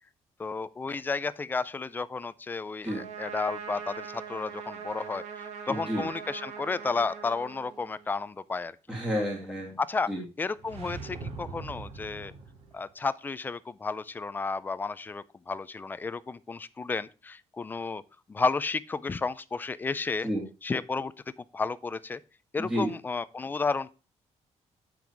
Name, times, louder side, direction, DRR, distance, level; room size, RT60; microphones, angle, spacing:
voice 1, 0.4-8.7 9.8-10.1 10.4-12.3 12.7-18.0 18.3-20.3 20.6-21.1 21.5-22.2 22.5-23.9, left 4 dB, 15° left, 0.4 m, -32 dB
Trumpet, 2.9-8.1, right 7 dB, 85° right, 1.8 m, -41 dB
voice 2, 5.7-6.0 8.9-9.7 10.1-10.2 20.2-20.4 22.6-22.9, equal, 5° right, 2.1 m, -30 dB
sound 1, 10.6-12.8, right 4 dB, 65° right, 1.9 m, -41 dB
8.7 x 6.0 x 4.6 m
cardioid pair, 180°, 12 cm